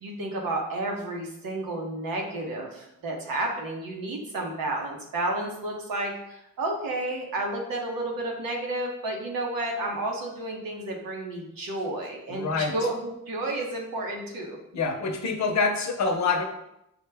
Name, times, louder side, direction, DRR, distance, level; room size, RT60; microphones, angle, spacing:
voice 1, 0.0-14.6, right 2 dB, 90° right, 0 dB, 1.0 m, -31 dB
voice 2, 12.3-12.7 14.7-16.4, left 4 dB, 55° left, 4 dB, 0.7 m, -26 dB
6.3 x 2.2 x 3.3 m, 0.82 s
cardioid pair, 95°, 33 cm